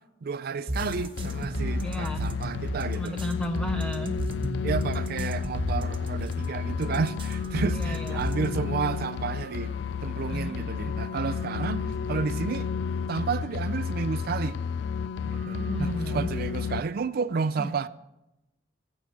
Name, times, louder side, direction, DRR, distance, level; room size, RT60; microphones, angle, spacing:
voice 1, 0.2-3.2 4.6-9.7 10.0-12.7 13.1-14.6 15.2-17.9, right 5 dB, 55° right, 0.4 m, -31 dB
sound 1, 0.7-8.7, equal, 30° right, 0.9 m, -33 dB
sound 2, 0.8-16.8, left 6 dB, 70° left, 0.4 m, -32 dB
voice 2, 1.8-2.3 3.0-4.2 7.7-8.3 10.3-10.6 15.5-16.3 17.6-17.8, equal, 5° left, 0.5 m, -34 dB
sound 3, 6.4-15.9, left 8 dB, 40° left, 1.4 m, -48 dB
16.0 x 6.3 x 6.3 m
head